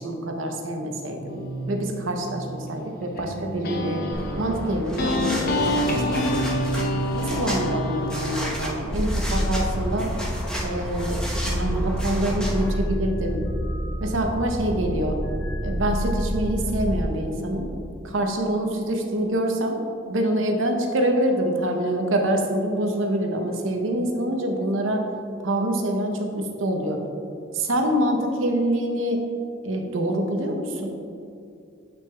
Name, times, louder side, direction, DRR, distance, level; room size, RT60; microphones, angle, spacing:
voice 1, 0.0-4.0 4.4-6.4 7.1-10.1 10.6-13.4 14.0-15.2 15.6-17.7 18.0-19.8 20.1-25.0 25.4-27.0 27.5-29.2 29.6-30.9, right 1 dB, 75° right, 3 dB, 0.8 m, -26 dB
sound 1, 1.3-8.4, equal, 50° left, 0.7 m, -27 dB
sound 2, 4.1-12.7, equal, 5° left, 0.9 m, -32 dB
sound 3, 8.8-17.0, equal, 30° left, 1.3 m, -28 dB
8.5 x 6.1 x 2.3 m, 2.5 s
head